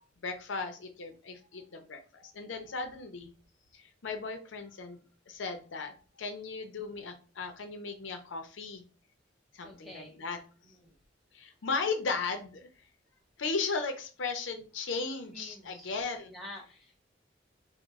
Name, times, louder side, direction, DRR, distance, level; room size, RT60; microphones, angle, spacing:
voice 1, 0.2-3.3 3.7-8.8 9.5-10.4 11.3-12.7 13.4-16.3, left 4 dB, 80° left, 6 dB, 0.6 m, -36 dB
voice 2, 9.6-10.2 10.6-10.9 15.3-15.9 16.3-17.0, left 1 dB, ahead, -2 dB, 0.8 m, -48 dB
3.0 x 2.1 x 3.5 m, 0.35 s
head